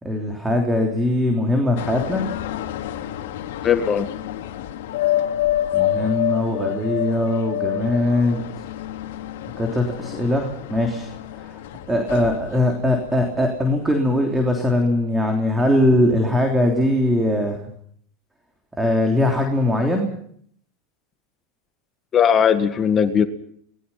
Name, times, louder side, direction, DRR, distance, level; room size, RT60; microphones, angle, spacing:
voice 1, 0.0-2.3 5.7-8.7 9.6-11.1 11.3-11.6 11.9-17.6 18.8-20.1, left 1 dB, 10° right, 2 dB, 3.4 m, -21 dB
sound 1, 1.8-14.0 14.4-14.8, left 12 dB, 75° left, 2.5 m, -28 dB
voice 2, 3.6-4.1 22.1-23.3, left 8 dB, 30° left, 9 dB, 1.6 m, -18 dB
27.0 x 20.0 x 5.8 m, 0.65 s
supercardioid pair, 125°, 0 cm